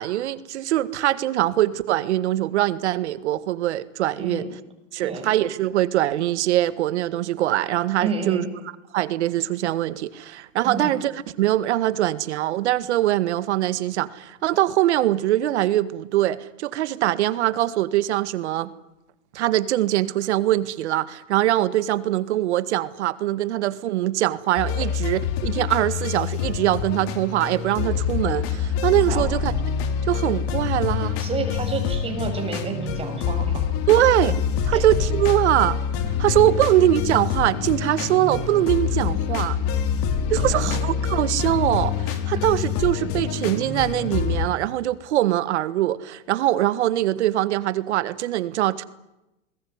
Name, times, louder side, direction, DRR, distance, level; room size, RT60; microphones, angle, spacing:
voice 1, 0.0-4.5 4.9-8.4 8.9-18.7 19.3-29.5 30.1-31.2 33.9-34.4 34.6-35.8 36.2-39.6 40.3-48.8, right 14 dB, 60° right, 15 dB, 1.9 m, -22 dB
voice 2, 4.2-4.5 5.0-5.3 8.0-8.5 10.6-10.9 29.1-29.3 31.2-33.7 34.7-34.8 40.5-40.7, right 4 dB, 15° right, 4 dB, 6.9 m, -30 dB
sound 1, 24.6-44.5, left 7 dB, 35° left, 3.8 m, -26 dB
28.5 x 21.0 x 9.7 m, 0.94 s
hypercardioid pair, 145°, 37 cm